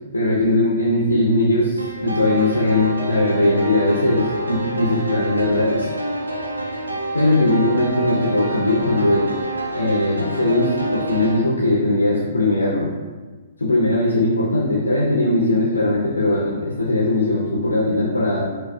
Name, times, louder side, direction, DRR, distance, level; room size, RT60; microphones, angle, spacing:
voice 1, 0.1-5.9 7.1-9.3 9.7-12.9 13.6-18.5, left 2 dB, 80° left, -4 dB, 0.5 m, -19 dB
sound 1, 1.8-11.4, right 2 dB, 85° right, 0.5 m, -28 dB
4.8 x 2.0 x 2.3 m, 1.3 s
figure-of-eight pair, 115°, 0 cm